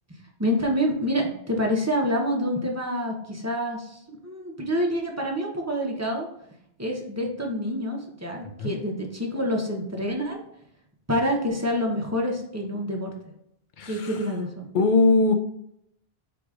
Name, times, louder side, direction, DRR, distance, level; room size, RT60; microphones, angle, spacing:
voice 1, 0.1-6.3 6.8-10.4 11.1-13.1 13.9-14.7, equal, 15° right, 0 dB, 0.7 m, -27 dB
voice 2, 13.8-14.2 14.7-15.3, left 3 dB, 55° left, 7 dB, 0.6 m, -20 dB
4.8 x 3.8 x 2.4 m, 0.77 s
omnidirectional pair, 1.1 m